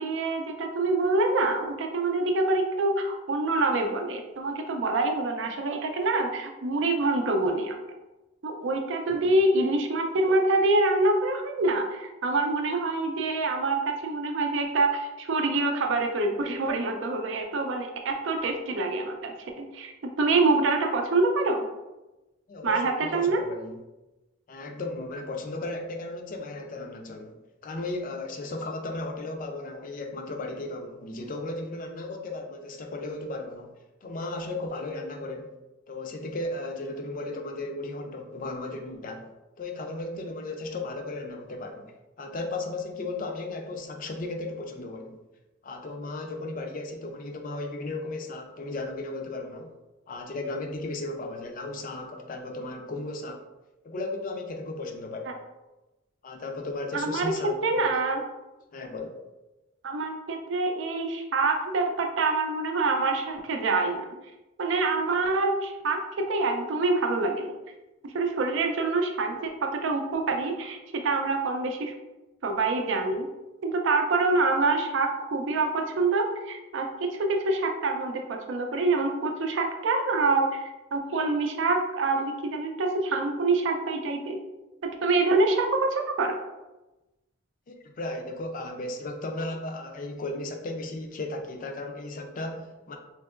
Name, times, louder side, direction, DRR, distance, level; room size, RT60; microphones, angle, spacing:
voice 1, 0.0-7.8 8.4-19.9 20.2-21.6 22.6-23.4 56.9-57.3 57.6-58.2 59.8-64.1 64.6-67.5 68.1-71.9 72.4-73.3 73.6-84.4 84.8-86.4, right 3 dB, 70° right, 3 dB, 0.5 m, -26 dB
voice 2, 22.5-23.8 24.5-27.3 27.6-33.7 34.0-35.5 35.9-39.3 39.6-45.2 45.6-49.7 50.1-53.5 53.8-55.4 56.2-58.0 58.7-59.2 87.7-93.0, left 2 dB, 40° left, 4 dB, 0.4 m, -35 dB
3.3 x 2.8 x 2.4 m, 1.0 s
head